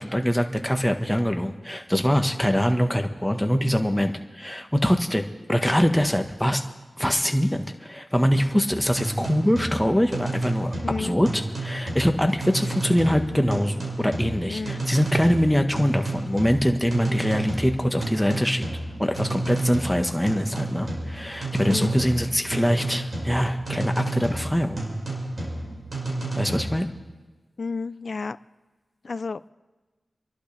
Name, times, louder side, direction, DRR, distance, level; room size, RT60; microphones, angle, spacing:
voice 1, 0.0-5.2 5.5-6.6 7.0-18.6 19.0-24.8 26.4-26.9, equal, 5° left, 5 dB, 1.4 m, -23 dB
sound 1, 8.7-26.8, right 2 dB, 50° right, 5.5 m, -31 dB
voice 2, 10.8-11.2 14.5-14.9 21.7-22.0 27.6-28.4 29.0-29.5, left 4 dB, 65° left, 16 dB, 0.4 m, -31 dB
29.5 x 11.5 x 3.4 m, 1.2 s
cardioid pair, 55°, 0 cm